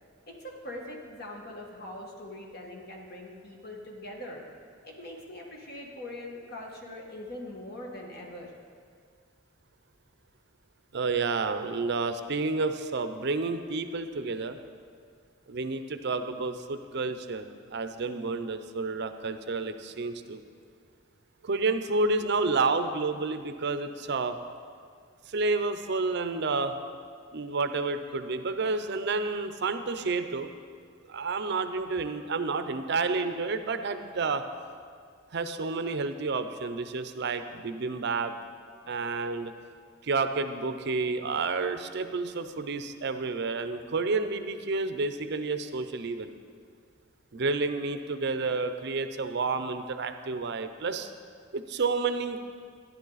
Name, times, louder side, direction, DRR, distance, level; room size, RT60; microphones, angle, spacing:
voice 1, 0.3-4.4 4.8-8.5, left 1 dB, 50° left, 0 dB, 1.7 m, -42 dB
voice 2, 10.9-14.6 15.5-20.4 21.4-24.4 25.3-26.7 27.3-30.5 31.1-34.4 35.3-38.3 38.9-39.5 40.0-46.3 47.3-51.1 51.5-52.4, right 3 dB, 55° right, 9 dB, 0.6 m, -30 dB
13.0 x 10.5 x 4.0 m, 2.1 s
head